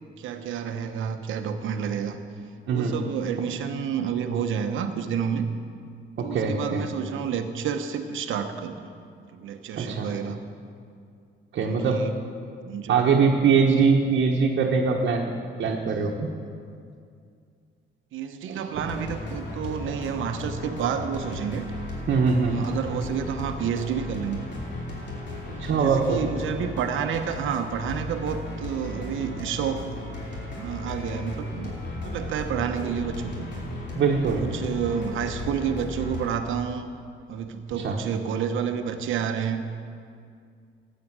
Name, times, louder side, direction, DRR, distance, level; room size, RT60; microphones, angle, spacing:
voice 1, 0.2-2.2 2.7-5.5 6.2-8.9 9.3-10.4 11.7-12.1 12.7-13.1 18.1-21.7 22.4-24.4 25.6-29.9 30.6-31.7 32.0-33.5 34.3-36.9 37.3-39.6, right 7 dB, 80° right, 8 dB, 1.0 m, -29 dB
voice 2, 6.2-6.8 9.8-10.1 11.5-12.0 12.9-15.3 15.6-16.3 18.5-18.6 22.1-22.6 25.6-26.2 34.0-34.4 37.8-38.0, right 5 dB, 65° right, -1 dB, 1.3 m, -22 dB
sound 1, 18.7-36.3, left 1 dB, 65° left, 3.2 m, -35 dB
13.0 x 8.6 x 7.9 m, 2.3 s
cardioid pair, 90°, 20 cm